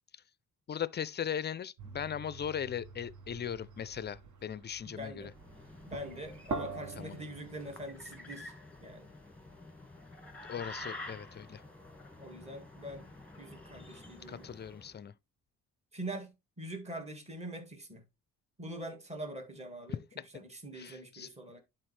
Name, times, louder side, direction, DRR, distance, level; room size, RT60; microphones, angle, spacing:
voice 1, 0.7-5.3 7.0-7.1 10.5-11.6 14.3-15.1 19.9-20.0 20.7-21.3, left 8 dB, 30° left, 0.4 m, -38 dB
sound 1, 1.8-7.8, right 4 dB, 55° right, 1.0 m, -44 dB
voice 2, 4.9-5.3 5.9-8.5 8.8-9.1 12.2-13.1 13.4-14.5 15.9-18.0 18.6-20.0 20.3-21.6, right 1 dB, 20° right, 1.7 m, -43 dB
sound 2, 5.2-15.0, left 2 dB, 5° left, 1.7 m, -49 dB
11.0 x 4.3 x 3.2 m
cardioid pair, 145°, 34 cm